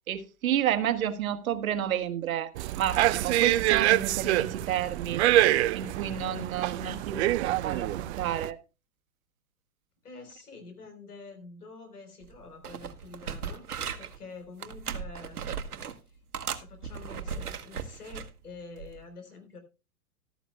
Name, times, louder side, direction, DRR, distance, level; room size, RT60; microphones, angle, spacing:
voice 1, 0.1-5.2 5.7-8.6, right 10 dB, 65° right, 1.4 m, -30 dB
sound 1, 2.5-8.5, right 15 dB, 50° right, 0.6 m, -26 dB
voice 2, 10.0-13.6 14.0-15.4 16.1-16.2 16.5-19.6, left 3 dB, 85° left, 4.1 m, -47 dB
sound 2, 12.2-12.4 12.6-14.2 14.6-16.0 16.3-18.3 18.8-19.0, right 7 dB, 80° right, 1.3 m, -37 dB
14.5 x 13.0 x 2.2 m
hypercardioid pair, 110°, 45 cm